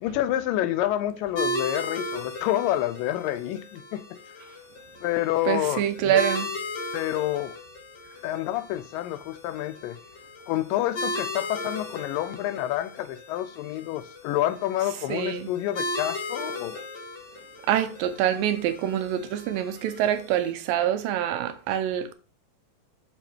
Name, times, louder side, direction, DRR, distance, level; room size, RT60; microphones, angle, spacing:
voice 1, 0.0-4.4 5.0-6.2 6.9-7.5 8.2-10.0 10.5-16.8, left 13 dB, 80° left, 2.2 m, -28 dB
sound 1, 1.4-20.5, left 2 dB, 45° left, 1.5 m, -36 dB
voice 2, 5.5-6.5 15.1-15.5 17.7-22.1, right 11 dB, 85° right, 2.4 m, -25 dB
6.4 x 5.7 x 3.4 m
omnidirectional pair, 4.0 m